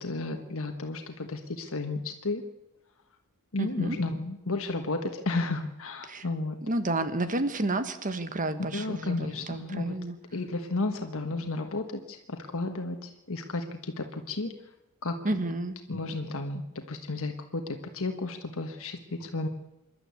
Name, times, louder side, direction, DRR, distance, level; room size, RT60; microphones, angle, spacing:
voice 1, 0.0-2.4 3.5-6.6 8.7-10.0 10.3-14.5 15.0-15.4 15.9-19.5, left 2 dB, 65° left, 5 dB, 1.4 m, -33 dB
voice 2, 3.6-4.0 6.0-6.3 6.6-10.2 15.2-15.8, right 2 dB, 35° right, 10 dB, 1.5 m, -31 dB
26.5 x 11.5 x 8.3 m, 0.96 s
head